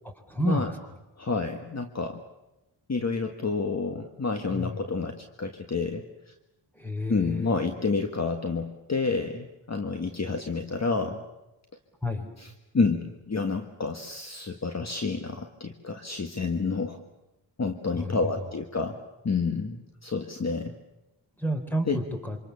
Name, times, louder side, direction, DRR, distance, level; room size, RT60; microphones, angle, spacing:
voice 1, 0.3-0.8 4.5-4.9 6.8-7.5 12.0-12.3 17.9-18.3 21.4-22.4, equal, 5° left, 5 dB, 4.2 m, -30 dB
voice 2, 1.2-2.2 2.9-6.0 7.1-11.2 12.4-12.5 12.7-17.0 17.6-20.7 21.9-22.0, left 4 dB, 35° left, 5 dB, 1.6 m, -29 dB
27.0 x 26.0 x 7.1 m, 0.96 s
wide cardioid pair, 95°, 47 cm